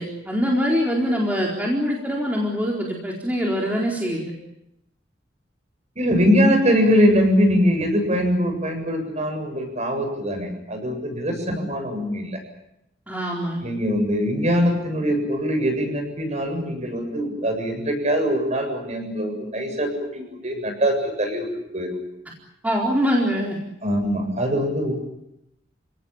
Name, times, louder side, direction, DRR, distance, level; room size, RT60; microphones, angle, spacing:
voice 1, 0.0-4.3 13.1-13.6 22.6-23.6, equal, 10° right, -2 dB, 4.3 m, -23 dB
voice 2, 6.0-12.4 13.6-21.5 21.7-21.9 23.8-24.9, equal, 40° right, 4 dB, 7.6 m, -22 dB
30.0 x 18.0 x 8.8 m, 0.82 s
head